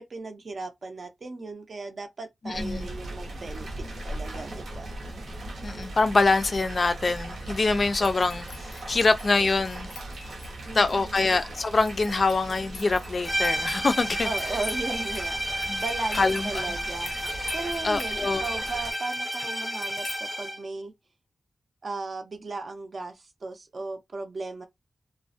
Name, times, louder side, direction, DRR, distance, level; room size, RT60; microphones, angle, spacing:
voice 1, 0.0-5.0 10.7-11.3 14.2-15.4 15.8-17.1 17.5-20.9 21.8-24.7, right 3 dB, 55° right, 0.5 m, -36 dB
voice 2, 2.4-2.9 5.6-9.9 10.7-14.3 15.5-15.8 16.2-16.7 17.8-18.5, left 3 dB, 45° left, 0.3 m, -25 dB
sound 1, 2.5-18.9, right 1 dB, 90° right, 0.7 m, -39 dB
sound 2, 7.9-20.2, left 3 dB, 90° left, 0.6 m, -45 dB
sound 3, 13.2-20.7, equal, 5° right, 0.5 m, -31 dB
2.4 x 2.0 x 2.5 m
wide cardioid pair, 140°, 0 cm